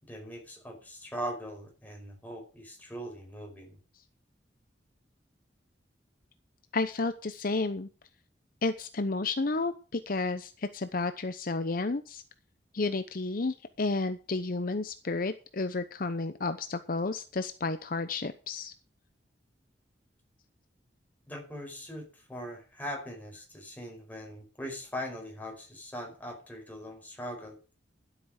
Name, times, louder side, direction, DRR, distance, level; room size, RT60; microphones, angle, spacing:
voice 1, 0.0-3.8 21.3-27.6, equal, 10° left, 1 dB, 5.0 m, -41 dB
voice 2, 6.7-7.9 8.6-12.2 12.7-18.7, left 3 dB, 50° left, 10 dB, 0.8 m, -31 dB
12.0 x 8.5 x 6.5 m, 0.36 s
head